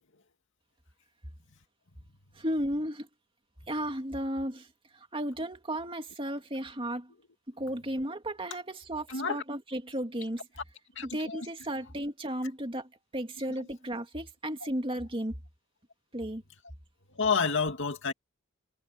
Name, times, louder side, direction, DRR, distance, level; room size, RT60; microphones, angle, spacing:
voice 1, 2.4-3.1 3.7-4.7 5.1-7.1 7.6-10.4 11.0-15.3 16.1-16.4, right 1 dB, 25° right, 2.6 m, -34 dB
voice 2, 9.1-9.4 11.0-11.5 13.6-13.7 17.1-18.1, left 5 dB, 60° left, 2.6 m, -29 dB
head